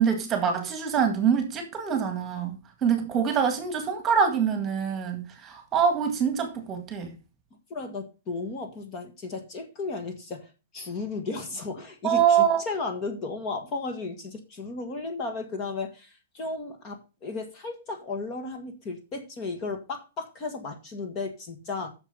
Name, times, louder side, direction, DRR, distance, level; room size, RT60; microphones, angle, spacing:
voice 1, 0.0-2.6 2.8-7.1 12.0-12.6, right 7 dB, 15° right, 1.9 m, -24 dB
voice 2, 7.7-21.9, left 3 dB, 25° left, 1.7 m, -34 dB
8.9 x 6.6 x 5.6 m
hypercardioid pair, 170°, 0 cm